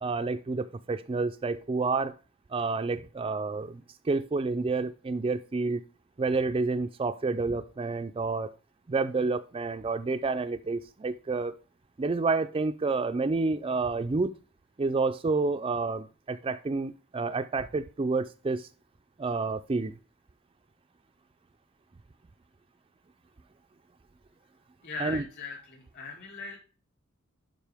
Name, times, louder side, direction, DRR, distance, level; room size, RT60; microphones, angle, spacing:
voice 1, 0.0-2.1 2.5-5.8 6.2-8.5 8.9-11.6 12.0-14.3 14.8-18.7 19.2-19.9 25.0-25.2, right 3 dB, 25° right, 0.3 m, -29 dB
voice 2, 24.8-26.6, left 4 dB, 50° left, 3.9 m, -39 dB
12.0 x 5.3 x 3.4 m
head